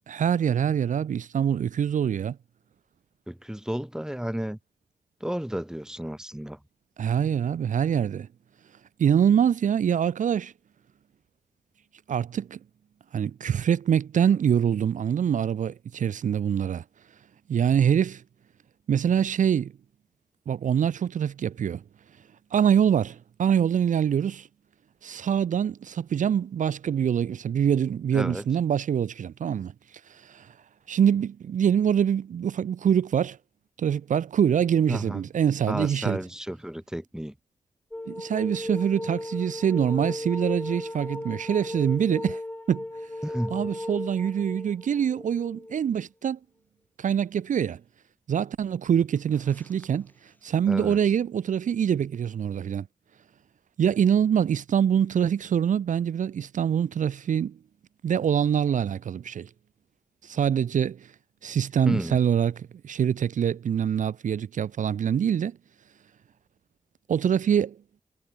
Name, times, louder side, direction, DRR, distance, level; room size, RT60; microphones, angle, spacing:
voice 1, 0.1-2.4 7.0-8.3 9.0-10.5 12.1-12.6 13.1-16.8 17.5-18.2 18.9-19.7 20.5-21.8 22.5-24.5 25.0-29.7 30.1-30.5 30.9-33.4 33.8-36.2 38.1-42.4 42.7-42.8 43.5-46.4 47.0-47.8 48.3-52.9 53.8-57.6 58.0-59.5 60.2-61.1 61.4-62.5 62.8-65.6 67.1-67.8, right 8 dB, 75° right, 0.5 m, -24 dB
voice 2, 3.3-4.6 5.2-6.6 28.1-28.4 34.9-35.2 35.7-37.3 43.2-43.7 50.7-51.0 61.8-62.2, equal, 5° right, 1.5 m, -32 dB
sound 1, 37.9-46.0 49.3-50.0, left 1 dB, 15° left, 1.3 m, -36 dB
cardioid pair, 45°, 13 cm